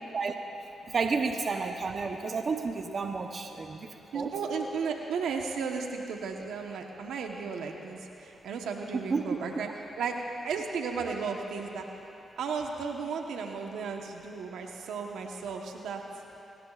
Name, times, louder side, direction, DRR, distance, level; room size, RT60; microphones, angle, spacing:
voice 1, 0.9-3.9 4.1-4.3 8.9-9.4, right 4 dB, 55° right, 4 dB, 0.9 m, -31 dB
voice 2, 4.1-9.7 10.0-11.8 12.4-16.2, right 5 dB, 85° right, 2 dB, 1.1 m, -34 dB
22.5 x 18.5 x 2.5 m, 2.8 s
cardioid pair, 60°, 0 cm